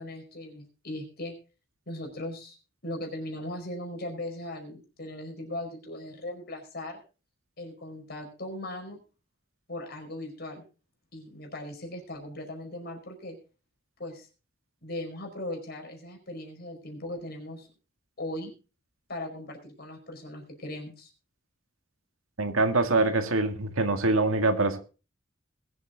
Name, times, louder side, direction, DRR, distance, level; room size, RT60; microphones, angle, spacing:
voice 1, 0.0-1.3 1.9-2.6 2.8-7.0 7.6-9.0 9.7-10.6 11.1-13.4 14.0-14.3 14.8-17.7 18.2-18.5 19.1-21.1, left 1 dB, 50° left, 3 dB, 4.9 m, -38 dB
voice 2, 22.4-24.8, right 2 dB, 90° right, 7 dB, 2.0 m, -24 dB
21.0 x 8.1 x 4.0 m, 0.34 s
head